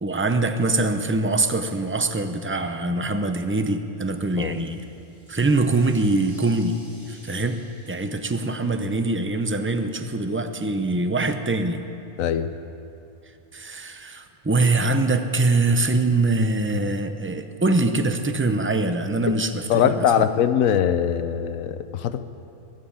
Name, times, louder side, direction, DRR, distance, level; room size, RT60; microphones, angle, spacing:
voice 1, 0.0-4.8 5.3-6.8 7.1-7.6 7.9-11.9 13.5-20.3, right 2 dB, 15° right, 8 dB, 0.5 m, -23 dB
sound 1, 3.9-9.8, equal, 35° right, 3.3 m, -54 dB
voice 2, 12.2-12.5 19.3-19.4 19.7-22.3, left 9 dB, 85° left, 11 dB, 1.1 m, -22 dB
22.0 x 7.7 x 8.7 m, 2.8 s
omnidirectional pair, 1.4 m